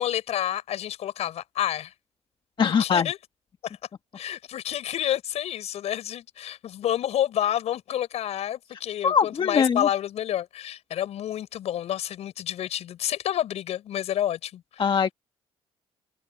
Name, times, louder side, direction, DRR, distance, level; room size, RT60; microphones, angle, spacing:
voice 1, 0.0-1.9 2.6-3.2 3.6-3.8 4.1-14.8, left 11 dB, 70° left, 6.1 m, -29 dB
voice 2, 2.6-3.1 9.0-9.9 14.8-15.1, left 6 dB, 45° left, 1.3 m, -22 dB
cardioid pair, 80°, 11 cm